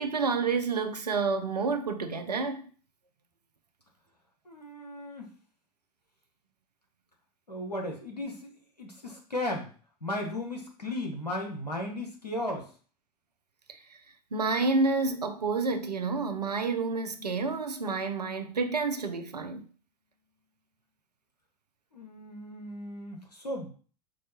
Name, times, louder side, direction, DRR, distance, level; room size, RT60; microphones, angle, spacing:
voice 1, 0.0-2.6 13.7-14.0 14.3-19.7, right 4 dB, 85° right, 0.4 m, -29 dB
voice 2, 4.4-5.3 7.5-8.5 8.8-9.7 10.0-12.7 21.9-23.7, left 1 dB, 90° left, 0.8 m, -35 dB
4.6 x 2.2 x 2.7 m
figure-of-eight pair, 80°, 20 cm